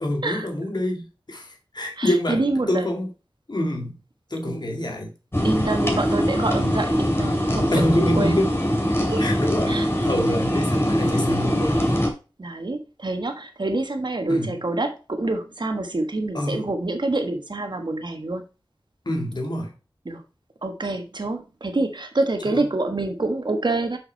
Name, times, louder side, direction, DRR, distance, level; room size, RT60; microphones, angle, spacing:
voice 1, 0.0-2.4 2.7-3.1 3.5-4.0 4.3-5.1 7.7-8.5 9.2-12.1 14.3-14.6 16.3-16.7 19.1-19.7 22.4-22.6, left 1 dB, 55° left, 2.1 m, -26 dB
voice 2, 2.0-2.9 4.4-4.7 5.4-8.4 9.1-9.2 9.7-9.9 12.4-18.4 20.0-20.2 20.6-24.0, right 2 dB, 60° right, 1.3 m, -26 dB
sound 1, 5.3-12.1, equal, 30° left, 2.5 m, -22 dB
6.2 x 5.6 x 4.5 m
wide cardioid pair, 45°, 9 cm